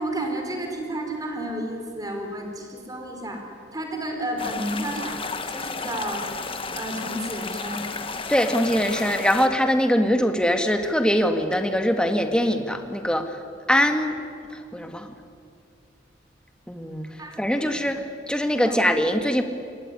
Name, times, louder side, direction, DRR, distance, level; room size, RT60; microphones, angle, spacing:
voice 1, 0.0-3.4 3.7-5.2 5.5-6.3 6.7-7.9 17.2-17.4 17.7-17.9 18.6-18.9, right 1 dB, 20° right, 3 dB, 4.6 m, -31 dB
sound 1, 4.4-9.5, left 4 dB, 30° left, 1.6 m, -33 dB
voice 2, 8.3-13.4 13.7-14.2 14.7-15.1 16.7-17.1 17.4-19.4, equal, 5° left, 6 dB, 1.8 m, -22 dB
27.5 x 21.5 x 9.9 m, 2.4 s
head